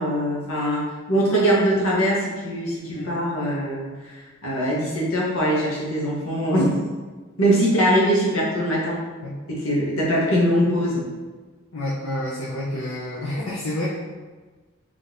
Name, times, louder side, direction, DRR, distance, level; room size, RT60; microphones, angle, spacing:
voice 1, 0.0-6.8 7.4-9.0 9.5-11.1, equal, 90° left, -4 dB, 1.3 m, -22 dB
voice 2, 11.7-13.9, left 1 dB, 70° left, -7 dB, 0.7 m, -29 dB
3.8 x 3.3 x 3.8 m, 1.3 s
head